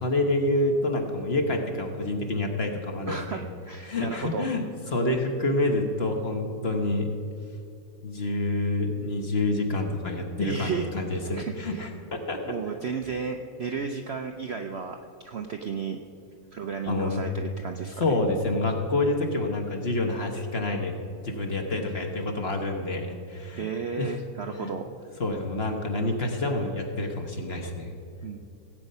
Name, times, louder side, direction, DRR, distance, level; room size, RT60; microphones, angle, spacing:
voice 1, 0.0-3.4 3.8-7.1 8.0-12.4 16.9-17.2 18.0-20.9 21.2-23.7 24.0-24.1 24.6-24.7 25.2-27.9, left 2 dB, 40° left, 3 dB, 1.2 m, -27 dB
voice 2, 3.1-4.5 10.4-10.9 11.3-11.9 12.5-16.0 16.5-18.0 23.6-24.8 28.2-28.5, right 5 dB, 85° right, 4 dB, 0.5 m, -33 dB
17.0 x 8.5 x 5.5 m, 2.6 s
omnidirectional pair, 2.0 m